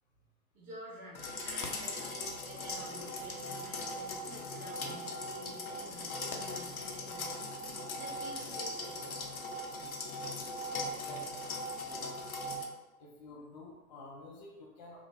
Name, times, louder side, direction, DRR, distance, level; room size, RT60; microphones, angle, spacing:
voice 1, 0.5-9.2, right 1 dB, 20° right, -5 dB, 0.5 m, -50 dB
sound 1, 1.1-12.6, left 2 dB, 70° left, 0.6 m, -39 dB
voice 2, 9.8-10.5 10.8-11.4 11.8-12.1 13.0-15.1, left 2 dB, 30° left, -2 dB, 0.5 m, -51 dB
2.7 x 2.6 x 3.1 m, 1.1 s
figure-of-eight pair, 100°, 44 cm